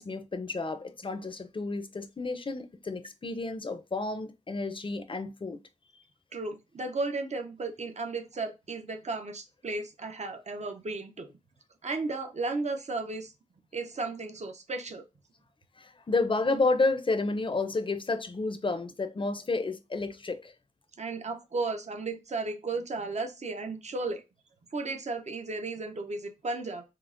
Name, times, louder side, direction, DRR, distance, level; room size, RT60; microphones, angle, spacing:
voice 1, 0.0-5.6 15.8-20.5, left 3 dB, 40° left, 0.5 m, -31 dB
voice 2, 6.3-11.3 11.8-13.3 13.7-15.0 21.0-24.2 24.7-26.8, right 3 dB, 60° right, 0.6 m, -34 dB
5.6 x 2.0 x 2.4 m
wide cardioid pair, 55°, 13 cm